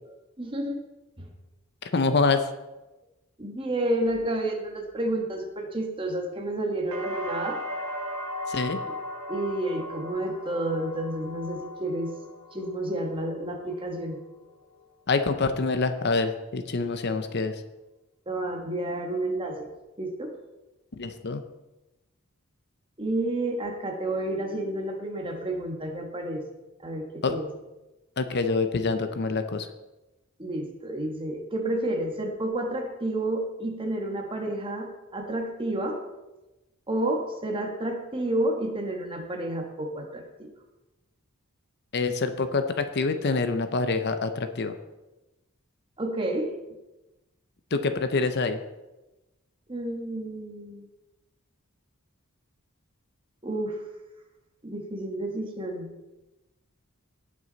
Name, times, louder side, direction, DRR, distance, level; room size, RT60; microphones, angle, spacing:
voice 1, 0.4-0.8 1.2-1.3 3.4-7.6 9.3-12.1 12.5-14.2 18.3-19.7 20.0-20.3 23.0-26.4 26.8-27.5 30.4-36.0 36.9-40.5 46.0-46.5 49.7-50.9 53.4-53.8 54.6-55.9, right 1 dB, 25° right, 1 dB, 1.5 m, -30 dB
voice 2, 1.9-2.5 8.5-8.8 15.1-17.5 21.0-21.4 27.2-27.4 28.2-29.7 41.9-44.7 47.7-48.6, left 3 dB, 50° left, 8 dB, 0.7 m, -26 dB
sound 1, 6.9-14.8 15.2-15.8, left 1 dB, 85° right, 1.9 m, -38 dB
18.0 x 6.2 x 4.0 m, 1.0 s
head